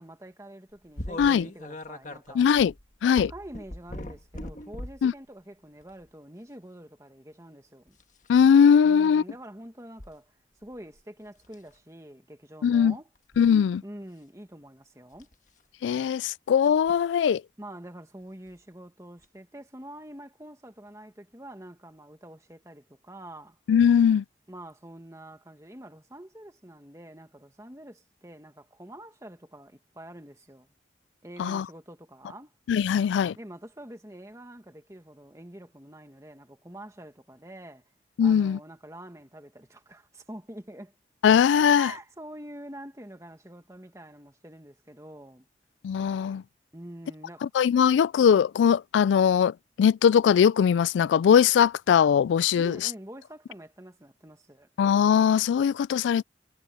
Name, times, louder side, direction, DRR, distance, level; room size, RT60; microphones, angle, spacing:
voice 1, 0.0-2.4 3.1-8.0 8.8-10.3 10.6-13.1 13.8-15.3 17.6-23.6 24.5-30.7 31.2-32.5 33.4-37.8 38.2-40.9 41.7-45.5 46.7-47.5 52.6-54.7, right 1 dB, 15° right, 1.9 m, -46 dB
sound 1, 1.0-5.1 5.8-6.1 7.9-8.3 10.0-10.1 10.6-11.0 11.4-11.7 13.1-13.5 15.1-15.3 16.8-17.0 18.5-18.6 19.2-19.3, left 1 dB, 45° left, 1.6 m, -40 dB
voice 2, 2.4-2.7 3.0-3.3 5.0-5.1 8.3-9.2 12.6-12.9 13.4-13.8 15.8-17.4 23.7-24.2 31.4-31.7 32.7-33.3 38.2-38.6 41.2-41.9 45.8-46.4 47.5-52.8 54.8-56.2, left 7 dB, 90° left, 0.3 m, -20 dB
head